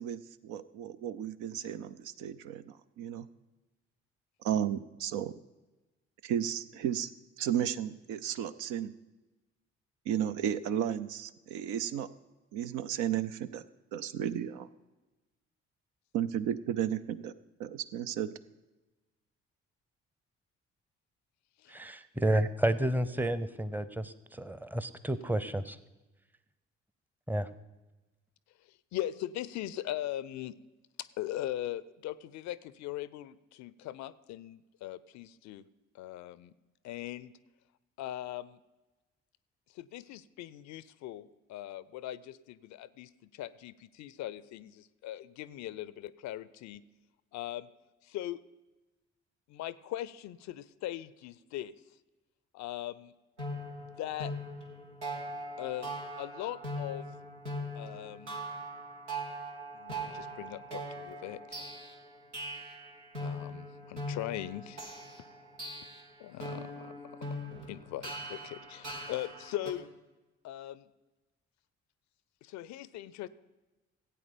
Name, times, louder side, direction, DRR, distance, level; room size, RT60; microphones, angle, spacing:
voice 1, 0.0-3.3 4.4-5.3 6.2-7.1 7.4-8.9 10.1-12.1 12.5-13.6 13.9-14.7 16.1-17.3 17.6-18.3, right 10 dB, 60° right, 12 dB, 0.6 m, -33 dB
voice 2, 21.7-25.8 27.3-27.5, right 1 dB, 5° right, 14 dB, 0.8 m, -31 dB
voice 3, 28.6-30.5 31.2-35.6 35.9-36.5 36.8-37.3 38.0-38.6 39.7-46.8 47.3-47.7 48.0-48.4 49.5-51.7 52.5-53.1 53.8-54.3 55.6-57.1 57.7-58.4 59.7-61.7 63.2-64.8 66.2-67.4 67.7-69.9 70.4-70.9 72.4-73.3, left 13 dB, 55° left, 18 dB, 0.5 m, -40 dB
sound 1, 53.4-69.7, equal, 90° right, 1.3 m, -41 dB
15.5 x 8.6 x 5.2 m, 1.1 s
figure-of-eight pair, 40°, 34 cm